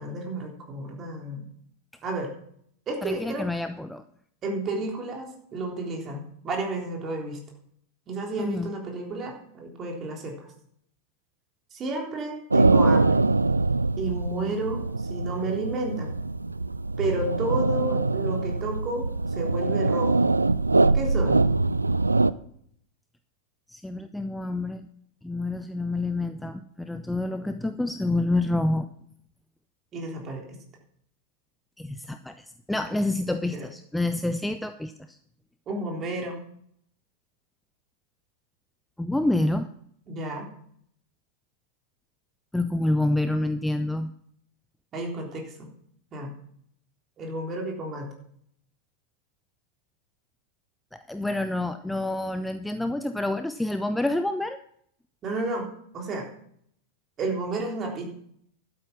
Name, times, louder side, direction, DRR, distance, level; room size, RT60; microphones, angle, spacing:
voice 1, 0.0-1.5 2.0-2.3 2.9-3.4 4.4-7.4 8.1-10.3 11.7-13.2 14.0-16.2 17.0-20.3 20.9-21.4 29.9-30.6 33.5-33.6 35.7-36.4 40.1-40.5 44.9-45.7 46.1-46.3 47.2-48.1 55.2-55.7 55.9-56.3 57.2-58.0, right 2 dB, 30° right, 1 dB, 3.5 m, -31 dB
voice 2, 3.0-4.0 8.4-8.7 23.7-24.9 25.2-28.9 31.8-35.2 39.0-39.7 42.5-44.1 50.9-54.6, left 2 dB, 5° left, 10 dB, 0.5 m, -28 dB
sound 1, 12.5-22.3, right 3 dB, 80° right, 0.4 m, -23 dB
12.0 x 8.6 x 5.9 m, 0.67 s
figure-of-eight pair, 90°, 0 cm